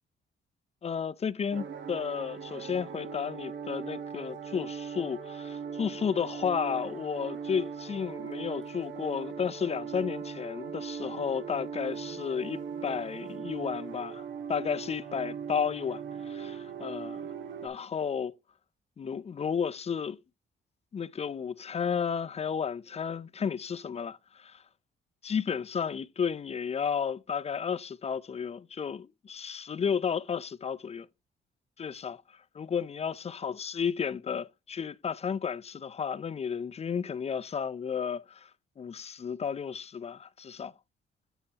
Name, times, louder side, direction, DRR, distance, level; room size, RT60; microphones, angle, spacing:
voice 1, 0.8-17.2 17.6-18.3 19.0-20.2 20.9-24.6 25.2-31.1 31.8-32.2 32.5-38.5 38.8-40.7, left 7 dB, 30° left, 0.5 m, -33 dB
sound 1, 1.5-17.7, right 6 dB, 70° right, 1.2 m, -39 dB
8.0 x 7.3 x 2.9 m
cardioid pair, 90°, 20 cm